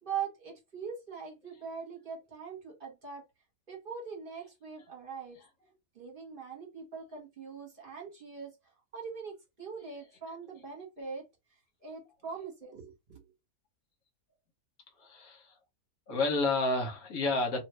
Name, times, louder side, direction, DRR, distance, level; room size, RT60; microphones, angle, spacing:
voice 1, 0.0-3.2 3.7-5.4 5.9-8.5 8.9-11.2 11.8-12.9, right 6 dB, 35° right, 1.3 m, -41 dB
voice 2, 15.0-15.6 16.1-17.6, left 3 dB, 65° left, 1.4 m, -30 dB
2.7 x 2.5 x 3.1 m
omnidirectional pair, 1.7 m